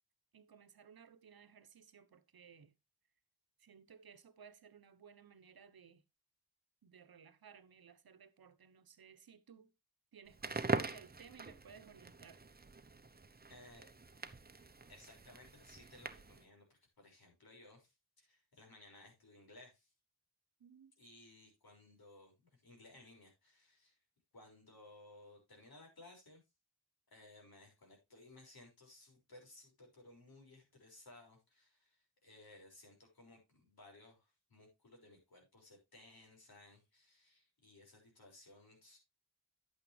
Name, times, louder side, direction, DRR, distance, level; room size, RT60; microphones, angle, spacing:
voice 1, 0.3-2.7 3.6-6.0 6.8-9.7 10.1-12.4 20.6-20.9, right 7 dB, 65° right, 1.2 m, -59 dB
Crackle, 10.3-16.5, right 3 dB, 25° right, 0.9 m, -43 dB
voice 2, 13.5-13.9 14.9-19.9 21.0-24.0 24.3-26.4 27.1-39.0, left 2 dB, 65° left, 5.9 m, -60 dB
10.5 x 8.6 x 3.3 m
wide cardioid pair, 75°, 39 cm